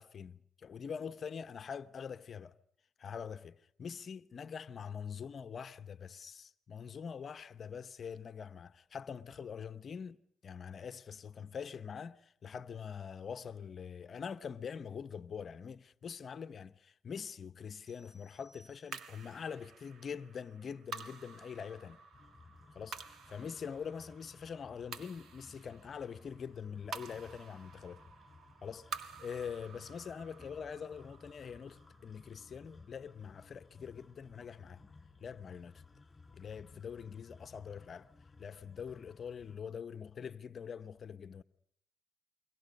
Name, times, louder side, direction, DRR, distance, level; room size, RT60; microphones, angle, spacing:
voice 1, 0.0-2.6 3.0-22.0 22.7-28.0 28.6-34.8 35.2-35.8 36.3-38.1 38.4-41.4, left 7 dB, 50° left, 0.9 m, -44 dB
sound 1, 17.9-19.4, equal, 25° right, 2.9 m, -66 dB
sound 2, 18.9-33.4, right 6 dB, 65° right, 1.8 m, -51 dB
sound 3, 22.1-39.6, left 3 dB, 20° left, 4.9 m, -59 dB
29.5 x 23.5 x 5.4 m
cardioid pair, 90°, 0 cm